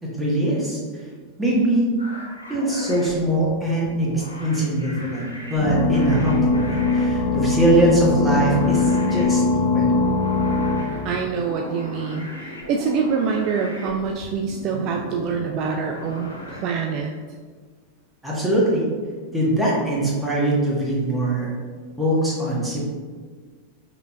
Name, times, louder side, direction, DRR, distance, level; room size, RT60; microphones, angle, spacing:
voice 1, 0.0-1.1 1.4-1.9 2.5-10.0 18.2-18.8 19.3-21.5 22.0-22.8, right 1 dB, 5° right, -5 dB, 1.3 m, -22 dB
sound 1, 2.0-16.6, equal, 80° left, 1.0 m, -37 dB
sound 2, 5.6-10.8, left 3 dB, 35° left, 0.9 m, -21 dB
voice 2, 11.0-17.1, right 5 dB, 40° right, 3 dB, 0.3 m, -25 dB
5.4 x 3.8 x 2.3 m, 1.5 s
figure-of-eight pair, 90°, 0 cm